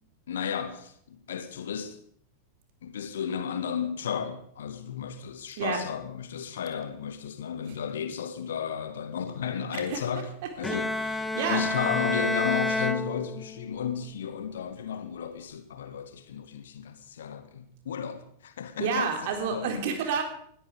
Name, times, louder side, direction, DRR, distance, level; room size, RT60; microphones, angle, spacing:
voice 1, 0.3-2.0 2.8-10.3 10.6-10.9 11.5-19.1 19.5-19.7, left 7 dB, 60° left, 1.7 m, -33 dB
Bowed string instrument, 10.6-13.8, left 2 dB, 5° left, 0.9 m, -29 dB
voice 2, 18.8-20.2, right 6 dB, 50° right, 3.9 m, -28 dB
20.5 x 13.5 x 5.1 m
figure-of-eight pair, 90°, 0 cm